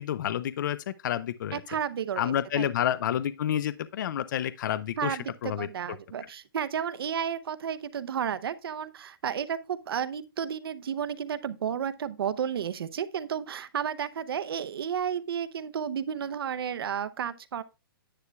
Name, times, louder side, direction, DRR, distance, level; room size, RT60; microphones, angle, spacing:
voice 1, 0.0-1.6 2.2-5.7, left 10 dB, 55° left, 0.5 m, -29 dB
voice 2, 1.5-2.7 5.0-17.6, right 8 dB, 85° right, 0.7 m, -32 dB
9.9 x 8.0 x 2.3 m
hypercardioid pair, 165°, 12 cm